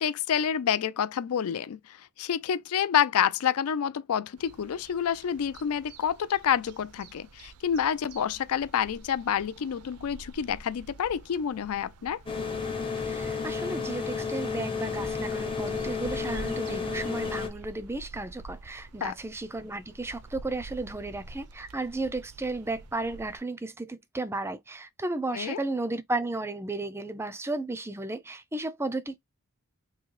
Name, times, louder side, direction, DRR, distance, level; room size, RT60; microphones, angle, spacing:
voice 1, 0.0-12.2 19.0-19.1 25.3-25.6, left 8 dB, 70° left, 0.4 m, -28 dB
sound 1, 4.4-23.4, right 3 dB, 85° right, 0.6 m, -48 dB
sound 2, 12.3-17.5, left 5 dB, 25° left, 0.8 m, -32 dB
voice 2, 13.0-29.2, right 2 dB, 10° right, 0.4 m, -34 dB
3.8 x 2.7 x 3.1 m
head